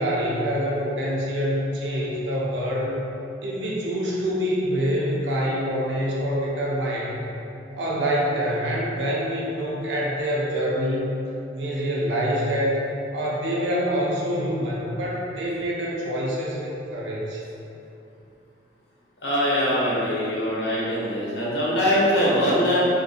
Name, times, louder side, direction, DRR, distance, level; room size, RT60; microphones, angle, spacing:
voice 1, 0.0-3.0 3.4-7.2 7.8-11.1 11.6-12.8 13.1-17.4, equal, 80° right, -4 dB, 0.5 m, -26 dB
voice 2, 19.2-22.9, equal, 70° left, -7 dB, 0.7 m, -22 dB
2.6 x 2.4 x 2.6 m, 2.7 s
head